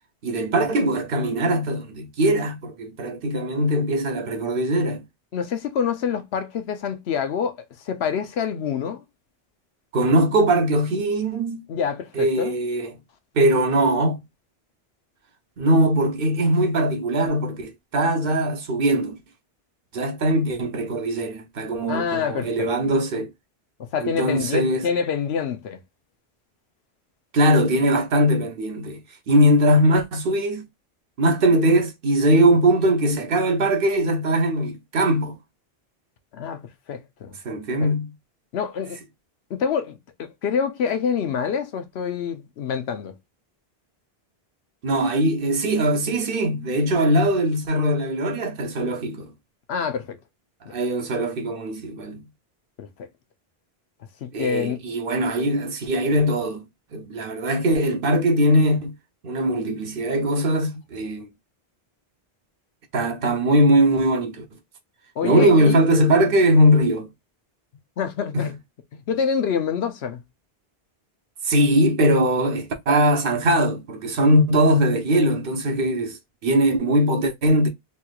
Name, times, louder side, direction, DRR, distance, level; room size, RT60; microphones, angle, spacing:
voice 1, 0.2-5.0 9.9-11.6 12.1-12.9 13.3-14.2 15.6-19.2 19.9-23.3 24.0-24.9 27.3-29.0 29.3-30.7 31.2-35.4 37.4-38.1 44.8-49.3 50.7-52.2 54.3-56.6 56.9-58.9 59.2-61.3 62.9-64.4 65.2-67.1 68.3-68.5 71.4-77.7, right 1 dB, 65° right, 0.9 m, -21 dB
voice 2, 5.3-7.6 7.8-9.0 11.7-12.5 21.9-22.7 23.8-25.8 36.3-36.6 36.9-37.4 37.8-37.9 38.5-39.0 39.5-43.1 49.7-50.2 50.7-50.8 52.8-53.1 54.2-54.8 65.2-65.8 68.0-68.5 68.9-70.2, left 7 dB, 80° left, 0.9 m, -26 dB
3.2 x 2.9 x 2.3 m
omnidirectional pair, 1.1 m